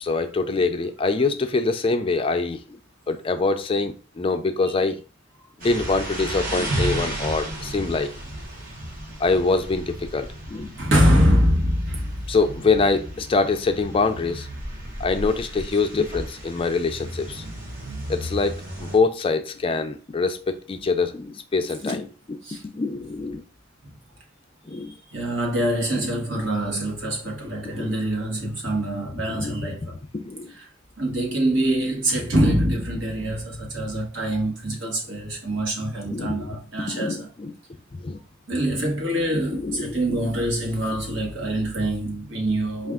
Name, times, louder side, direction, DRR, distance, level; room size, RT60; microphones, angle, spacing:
voice 1, 0.0-2.6 3.1-5.0 5.6-8.1 9.2-10.7 12.3-14.5 15.0-17.4 18.1-22.4 22.7-23.4 24.7-24.9 26.3-26.4 27.8-28.0 29.1-29.5 30.1-30.5 36.0-36.5 36.9-37.5 38.0-38.2 39.5-40.2 42.8-42.9, left 3 dB, 25° left, 0.4 m, -24 dB
sound 1, 5.6-19.0, right 1 dB, 45° right, 1.3 m, -33 dB
voice 2, 10.8-12.1 22.4-22.6 25.1-30.0 30.5-30.6 31.0-37.3 38.5-42.9, equal, 65° right, 1.3 m, -24 dB
4.4 x 2.4 x 3.6 m
head